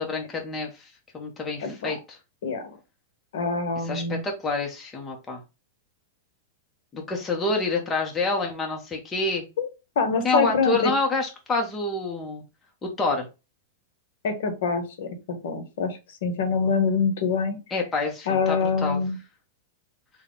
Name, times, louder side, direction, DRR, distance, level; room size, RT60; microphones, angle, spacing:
voice 1, 0.0-2.2 3.8-5.4 6.9-9.4 10.2-12.4 12.8-13.3 17.7-19.0, left 3 dB, 15° left, 1 dB, 0.8 m, -27 dB
voice 2, 1.6-1.9 2.4-2.8 3.3-4.2 9.6-9.7 10.0-10.9 14.2-17.6 18.3-19.2, left 5 dB, 70° left, 7 dB, 1.0 m, -25 dB
4.0 x 2.3 x 3.7 m, 0.28 s
supercardioid pair, 155°, 0 cm